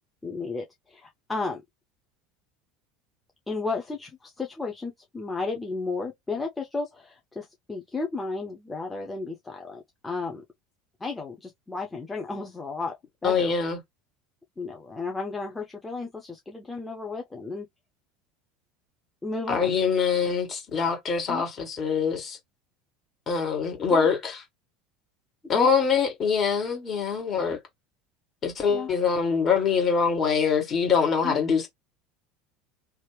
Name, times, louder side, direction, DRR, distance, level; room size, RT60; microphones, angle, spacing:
voice 1, 0.2-1.6 3.5-10.4 11.0-13.5 14.6-17.7 19.2-19.8 21.3-21.4 23.9-24.1 25.5-25.7 28.7-28.9 31.2-31.4, left 3 dB, 15° left, 0.7 m, -33 dB
voice 2, 13.2-13.8 19.5-22.4 23.3-24.4 25.5-27.6 28.4-31.7, left 6 dB, 35° left, 1.6 m, -24 dB
2.9 x 2.3 x 3.2 m
figure-of-eight pair, 70°, 0 cm